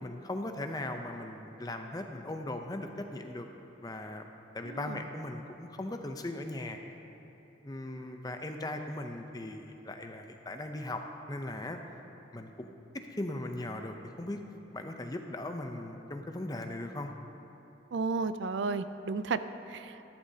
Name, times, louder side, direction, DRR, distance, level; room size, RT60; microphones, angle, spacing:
voice 1, 0.0-3.5 3.8-4.3 4.5-6.8 7.6-11.0 11.3-11.8 12.3-12.7 13.1-14.4 14.7-17.1, left 1 dB, 20° left, 5 dB, 0.6 m, -38 dB
voice 2, 4.6-5.0 17.9-19.4 19.7-20.0, right 4 dB, 75° right, 12 dB, 0.4 m, -33 dB
14.0 x 12.0 x 2.8 m, 3.0 s
head